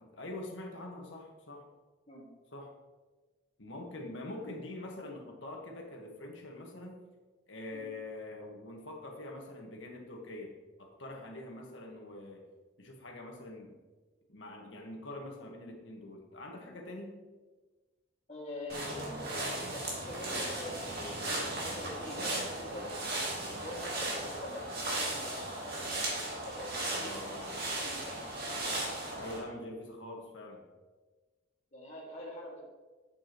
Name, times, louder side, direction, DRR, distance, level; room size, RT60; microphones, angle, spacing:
voice 1, 0.0-1.7 2.5-2.7 3.6-7.0 7.5-10.5 10.8-12.4 12.8-13.7 14.3-17.2 26.9-27.6 29.1-30.7, left 1 dB, 75° left, 1 dB, 1.5 m, -44 dB
voice 2, 18.3-22.9 23.6-25.5 26.4-28.4 31.7-32.6, left 1 dB, 35° left, -4 dB, 2.0 m, -45 dB
sound 1, 18.7-29.4, right 1 dB, 50° right, 2.3 m, -36 dB
8.5 x 7.9 x 3.0 m, 1.3 s
head